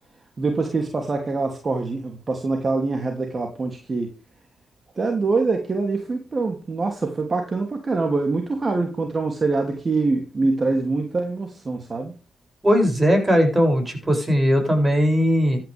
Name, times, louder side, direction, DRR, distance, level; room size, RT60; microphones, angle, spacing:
voice 1, 0.4-4.1 5.0-12.1, right 3 dB, 40° right, 3 dB, 2.9 m, -24 dB
voice 2, 12.6-15.6, equal, 25° right, 4 dB, 7.3 m, -19 dB
14.5 x 10.5 x 3.6 m, 0.36 s
supercardioid pair, 50°, 0 cm